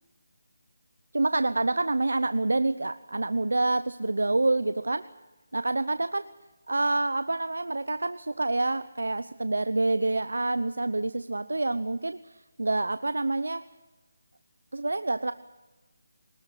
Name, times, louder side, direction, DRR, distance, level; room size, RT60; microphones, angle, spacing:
voice 1, 1.1-5.1 5.5-6.3 6.7-12.2 12.6-13.7 14.7-15.3, right 2 dB, 90° right, 13 dB, 0.8 m, -27 dB
23.5 x 19.5 x 8.3 m, 1.1 s
figure-of-eight pair, 165°, 0 cm